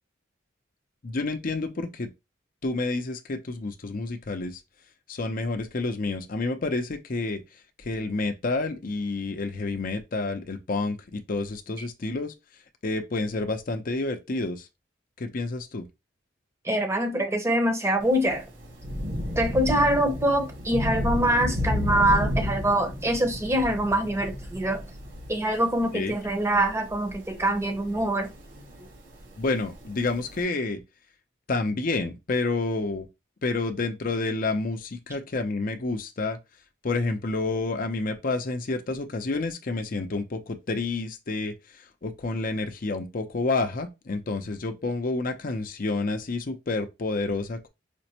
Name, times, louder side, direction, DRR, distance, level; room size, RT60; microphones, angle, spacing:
voice 1, 1.0-2.1 2.6-4.6 5.1-7.4 7.8-12.3 12.8-14.6 15.2-15.8 25.9-26.1 29.4-30.8 31.5-33.1 33.4-36.4 36.8-41.5 42.0-47.7, left 3 dB, 45° left, 0.6 m, -29 dB
voice 2, 16.6-18.5 19.4-24.9 25.3-28.3, right 1 dB, 15° right, 0.8 m, -24 dB
Thunder / Rain, 18.0-30.4, left 1 dB, 65° right, 1.6 m, -33 dB
5.0 x 2.1 x 2.8 m
head